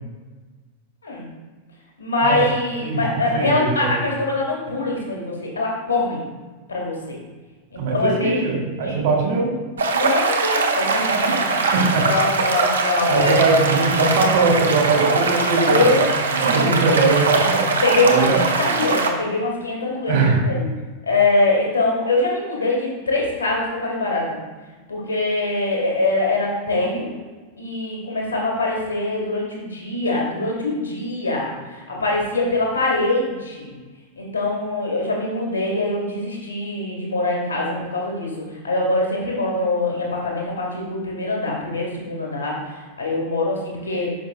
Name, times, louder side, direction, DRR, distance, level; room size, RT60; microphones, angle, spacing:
voice 1, 2.0-6.2 6.7-7.2 7.7-8.4 8.8-9.0 9.9-11.0 11.6-11.7 12.0-13.4 15.7-16.7 17.8-20.2 20.5-20.7 21.1-24.3 24.9-27.1 27.6-33.7 34.2-38.3 38.6-44.1, left 2 dB, 75° left, -2 dB, 2.2 m, -23 dB
voice 2, 3.3-4.0 7.8-9.5 11.7-12.1 13.1-17.6 18.0-18.4 20.1-20.4, right 3 dB, 55° right, 0 dB, 2.0 m, -20 dB
sound 1, 9.8-19.1, right 4 dB, 70° right, 0.9 m, -21 dB
10.5 x 5.7 x 2.4 m, 1.3 s
figure-of-eight pair, 90°, 0 cm